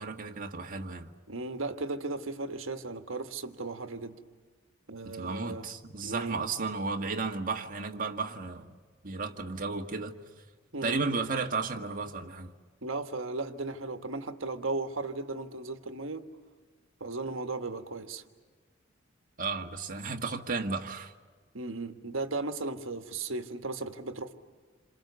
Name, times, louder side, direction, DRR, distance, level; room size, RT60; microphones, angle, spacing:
voice 1, 0.0-1.1 5.0-8.8 9.0-10.2 10.8-12.5 19.4-21.1, right 4 dB, 45° right, 1.7 m, -33 dB
voice 2, 1.3-4.2 4.9-5.7 6.0-6.4 10.7-11.0 12.8-16.2 17.0-18.2 21.5-24.3, right 3 dB, 75° right, 1.6 m, -36 dB
28.5 x 26.5 x 7.0 m
head